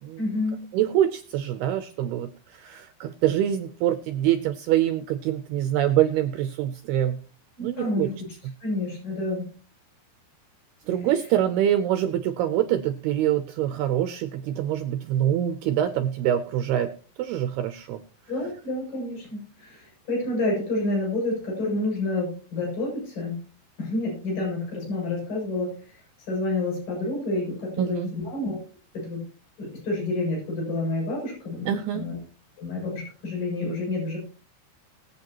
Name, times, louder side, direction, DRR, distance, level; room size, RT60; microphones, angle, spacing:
voice 1, 0.2-0.6 7.6-8.1 8.6-9.5 11.0-11.1 18.3-23.4 23.8-28.6 28.9-29.2 29.6-32.2 32.6-34.2, left 2 dB, 45° left, -2 dB, 8.5 m, -29 dB
voice 2, 0.7-7.2 7.6-8.1 10.9-16.9 17.2-18.0 27.8-28.1 31.7-32.1, right 11 dB, 80° right, 9 dB, 2.3 m, -25 dB
22.0 x 8.3 x 3.0 m, 0.37 s
omnidirectional pair, 5.4 m